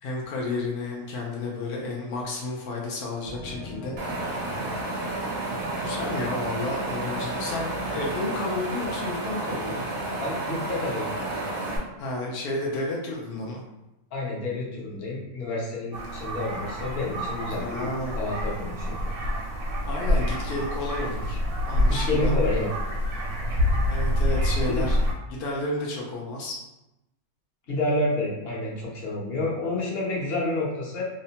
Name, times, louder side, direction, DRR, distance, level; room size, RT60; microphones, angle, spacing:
voice 1, 0.0-3.9 4.3-4.6 5.8-9.9 12.0-13.6 17.5-18.2 19.8-22.3 23.8-25.0 25.3-26.6, left 2 dB, 85° left, -2 dB, 0.5 m, -32 dB
sound 1, 3.2-10.0, right 2 dB, 20° left, 0.5 m, -41 dB
Wind, 4.0-11.8, right 2 dB, 60° right, 0.6 m, -31 dB
voice 2, 10.2-11.1 14.1-17.9 18.2-18.9 21.9-22.7 24.7-24.9 27.7-31.1, left 2 dB, 55° left, -4 dB, 0.7 m, -29 dB
sound 2, 15.9-25.1, left 1 dB, 80° right, 1.1 m, -27 dB
2.7 x 2.1 x 2.8 m, 0.93 s
omnidirectional pair, 1.6 m